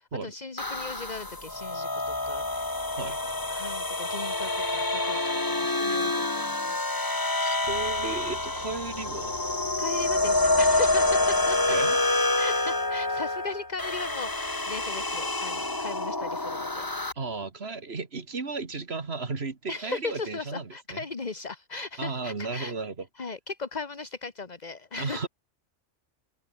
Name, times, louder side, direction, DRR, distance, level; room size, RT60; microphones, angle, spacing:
voice 1, 0.0-2.7 3.5-5.2 5.5-7.1 9.8-11.8 12.4-16.9 19.7-22.7 23.2-25.3, left 4 dB, 35° left, 1.6 m, -37 dB
sound 1, 0.6-17.1, left 2 dB, 15° left, 1.4 m, -27 dB
voice 2, 3.0-3.3 7.4-9.3 11.7-12.0 17.2-21.0 22.0-22.9 25.0-25.3, right 4 dB, 60° right, 2.3 m, -34 dB
Bass guitar, 7.6-17.4, left 2 dB, 85° left, 4.5 m, -52 dB
omnidirectional pair, 1.2 m